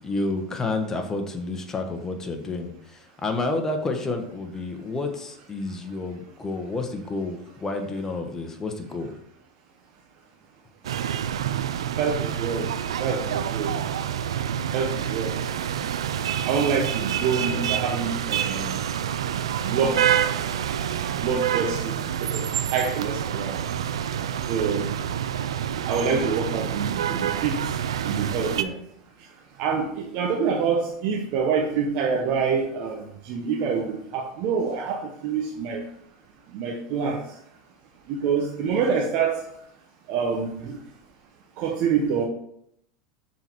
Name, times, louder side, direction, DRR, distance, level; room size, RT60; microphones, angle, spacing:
voice 1, 0.0-9.1, left 3 dB, 20° left, 4 dB, 1.3 m, -30 dB
sound 1, 10.8-28.6, right 9 dB, 85° right, 0.5 m, -27 dB
voice 2, 12.0-12.7 13.0-13.7 14.7-15.4 16.4-18.9 19.6-20.1 21.2-23.6 24.5-24.9 25.8-27.7 28.0-28.8 29.6-35.8 36.5-37.3 38.1-39.4 40.1-40.8 41.6-42.3, right 6 dB, 55° right, 1 dB, 1.0 m, -26 dB
6.9 x 4.2 x 4.6 m, 0.72 s
hypercardioid pair, 100°, 3 cm